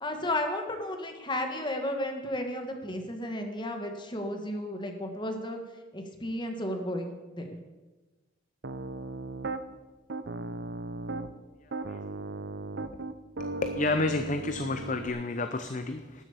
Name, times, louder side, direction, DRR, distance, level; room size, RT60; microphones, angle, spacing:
voice 1, 0.0-5.6 5.9-7.6, left 1 dB, 25° left, 5 dB, 1.5 m, -33 dB
Piano, 8.6-9.6 10.1-11.3 11.7-15.1, right 2 dB, 55° right, 0.6 m, -37 dB
voice 2, 13.6-16.2, left 3 dB, 40° left, 8 dB, 0.6 m, -30 dB
12.5 x 7.2 x 8.3 m, 1.2 s
head